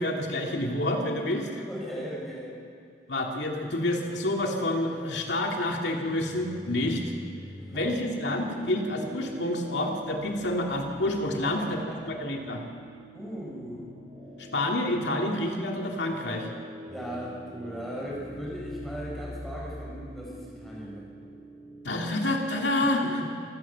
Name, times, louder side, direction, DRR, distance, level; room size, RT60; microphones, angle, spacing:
voice 1, 0.0-1.6 3.1-7.0 7.7-11.8 12.1-12.6 14.5-16.5 21.8-23.0, left 1 dB, 80° left, 1 dB, 2.3 m, -28 dB
voice 2, 1.4-2.5 7.6-7.8 11.4-12.0 13.1-13.9 16.9-21.1 22.8-23.3, equal, ahead, -5 dB, 6.5 m, -38 dB
sound 1, 5.9-21.9, equal, 25° right, 7.0 m, -44 dB
27.0 x 14.5 x 7.3 m, 2.4 s
head